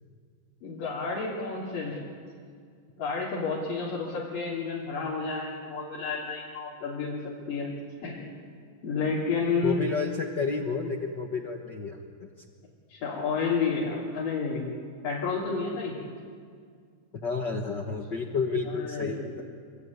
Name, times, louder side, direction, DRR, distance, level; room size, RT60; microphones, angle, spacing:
voice 1, 0.6-2.0 3.0-7.7 8.0-8.3 8.8-9.8 12.9-14.6 15.0-16.0 18.7-19.3, left 4 dB, 75° left, -6 dB, 4.7 m, -30 dB
voice 2, 9.6-12.0 17.2-19.4, left 4 dB, 55° left, 3 dB, 1.2 m, -30 dB
26.0 x 23.5 x 9.5 m, 2.2 s
omnidirectional pair, 3.9 m